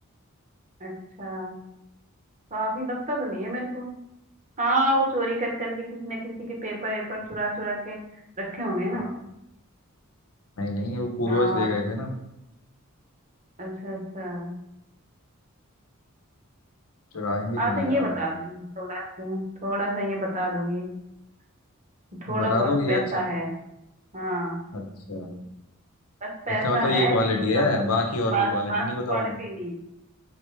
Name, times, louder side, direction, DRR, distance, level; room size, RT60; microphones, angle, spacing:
voice 1, 1.2-1.6 2.5-3.9 4.6-8.0 8.4-9.1 11.2-11.7 13.6-14.6 17.6-20.9 22.2-23.5 24.1-24.6 26.2-27.7 28.3-29.7, right 1 dB, 35° right, -1 dB, 1.1 m, -28 dB
voice 2, 10.6-12.1 17.1-18.1 22.3-23.0 24.7-25.3 26.6-29.4, left 2 dB, 80° left, 3 dB, 0.8 m, -26 dB
5.0 x 3.2 x 3.3 m, 0.86 s
head